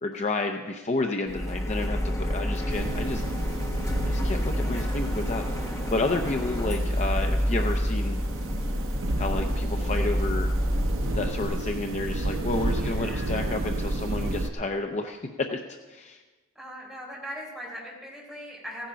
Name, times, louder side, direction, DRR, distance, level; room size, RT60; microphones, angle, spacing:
voice 1, 0.0-3.2 4.0-8.2 9.2-10.5 11.1-15.6 15.9-16.2, left 2 dB, 35° left, 4 dB, 0.6 m, -31 dB
Printer, 1.3-11.6, equal, 15° left, 1.1 m, -29 dB
sound 1, 2.7-14.5, right 1 dB, 80° right, 0.8 m, -32 dB
voice 2, 4.5-5.1 12.6-13.5 16.5-18.9, equal, ahead, -5 dB, 4.4 m, -41 dB
16.0 x 10.0 x 5.0 m, 1.3 s
head